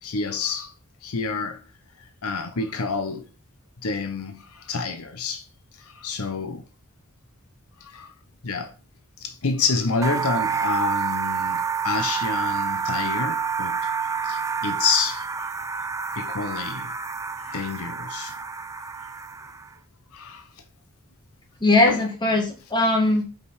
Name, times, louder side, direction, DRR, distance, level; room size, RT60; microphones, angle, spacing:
voice 1, 0.0-0.7 1.0-1.6 2.2-3.3 3.8-5.5 5.8-6.7 7.8-8.1 8.4-8.7 9.2-13.8 14.2-15.3 16.2-16.9 17.4-18.3 20.1-20.5 21.9-22.0, left 4 dB, 85° left, 0.8 m, -28 dB
sound 1, 10.0-19.7, right 6 dB, 15° right, 0.4 m, -28 dB
voice 2, 21.6-23.3, left 2 dB, 20° left, 1.8 m, -20 dB
5.3 x 5.2 x 4.8 m
head